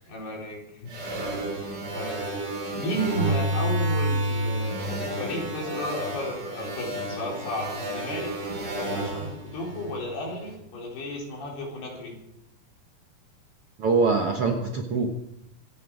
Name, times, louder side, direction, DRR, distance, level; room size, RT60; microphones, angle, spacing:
voice 1, 0.1-0.9 1.2-1.3 1.9-2.2 2.7-8.4 8.8-12.2, left 1 dB, 90° left, -2 dB, 6.4 m, -33 dB
sound 1, 0.9-10.4, right 1 dB, 30° right, 3.1 m, -30 dB
voice 2, 13.8-15.1, right 4 dB, 60° right, 2 dB, 1.5 m, -23 dB
25.5 x 10.0 x 4.9 m, 0.81 s
omnidirectional pair, 4.4 m